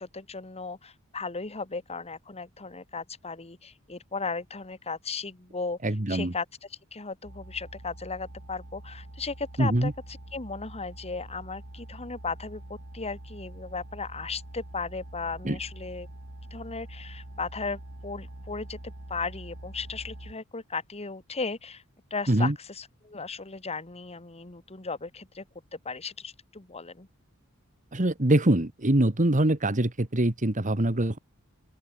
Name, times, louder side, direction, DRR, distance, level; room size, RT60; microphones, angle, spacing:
voice 1, 0.0-5.8 6.1-6.4 6.7-16.1 16.5-21.8 22.1-25.4 25.7-27.1, left 4 dB, 30° left, 1.8 m, -36 dB
voice 2, 5.8-6.3 9.6-9.9 15.4-15.6 22.3-22.5 27.9-31.2, right 1 dB, 35° right, 1.7 m, -24 dB
sound 1, 7.2-20.3, right 1 dB, 85° right, 2.8 m, -45 dB
open air
head